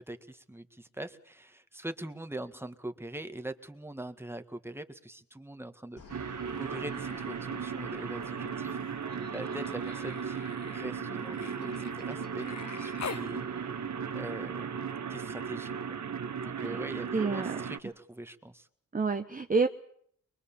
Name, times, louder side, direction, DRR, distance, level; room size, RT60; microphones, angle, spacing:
voice 1, 0.0-8.8 9.3-13.5 14.1-14.8 15.1-16.0 16.4-18.7, right 1 dB, 5° right, 8 dB, 1.9 m, -42 dB
sound 1, 6.0-14.5, left 4 dB, 70° left, 4.7 m, -52 dB
sound 2, 6.1-17.8, right 6 dB, 60° right, 1.3 m, -36 dB
Human voice, 6.6-7.4 7.7-13.3 14.9-15.0, left 6 dB, 55° left, 1.3 m, -46 dB
voice 2, 17.1-17.6 18.9-19.7, right 4 dB, 25° right, 7 dB, 1.0 m, -28 dB
23.5 x 22.5 x 7.3 m, 0.65 s
cardioid pair, 85°, 32 cm